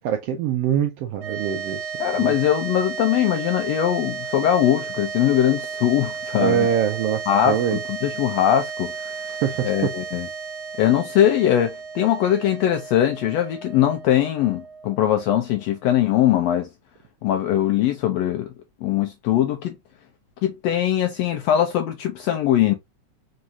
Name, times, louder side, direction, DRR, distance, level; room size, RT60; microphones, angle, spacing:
voice 1, 0.0-1.9 2.2-2.3 6.4-7.8 9.3-9.9, right 9 dB, 85° right, 1.4 m, -24 dB
sound 1, 1.1-15.6, right 6 dB, 60° right, 1.4 m, -34 dB
voice 2, 2.0-6.7 7.3-9.3 9.6-10.3 10.8-16.7 17.2-18.5 18.8-19.7 20.4-22.7, left 11 dB, 80° left, 1.6 m, -21 dB
4.7 x 3.2 x 2.6 m
omnidirectional pair, 3.3 m